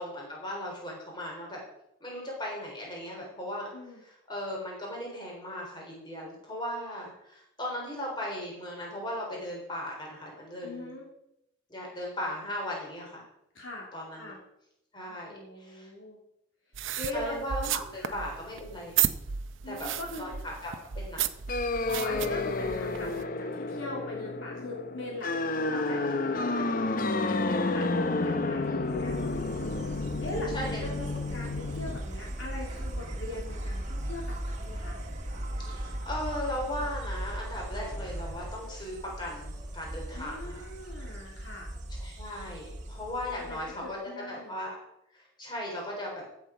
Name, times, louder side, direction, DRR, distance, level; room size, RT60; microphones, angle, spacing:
voice 1, 0.0-1.6 2.0-3.7 4.3-10.9 11.7-13.3 13.9-14.3 14.9-15.9 17.1-18.9 19.7-19.9 20.2-21.2 25.7-26.2 30.5-30.8 35.6-40.6 42.0-44.0 44.3-44.7 45.1-46.2, left 1 dB, 25° left, -2 dB, 3.6 m, -37 dB
voice 2, 10.6-11.1 13.5-14.4 15.1-16.2 17.0-17.4 17.9-18.2 19.6-20.3 21.9-27.9 28.2-35.0 40.1-41.7 43.3-44.5, left 2 dB, 75° left, -2 dB, 3.1 m, -41 dB
sound 1, 16.7-23.2, right 10 dB, 75° right, 0.6 m, -33 dB
sound 2, 21.5-32.0, left 3 dB, 45° left, 0.7 m, -30 dB
Insect, 28.9-43.9, right 1 dB, 35° right, 1.5 m, -38 dB
15.0 x 7.3 x 5.0 m, 0.80 s
head